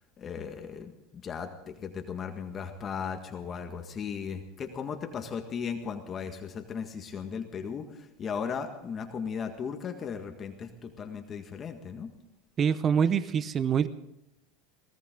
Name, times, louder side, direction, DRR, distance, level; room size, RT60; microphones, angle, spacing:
voice 1, 0.2-0.9 1.2-12.1, left 6 dB, 35° left, 5 dB, 1.7 m, -36 dB
voice 2, 12.6-13.9, right 7 dB, 35° right, 14 dB, 0.8 m, -25 dB
22.0 x 17.0 x 3.8 m, 0.83 s
supercardioid pair, 105°, 0 cm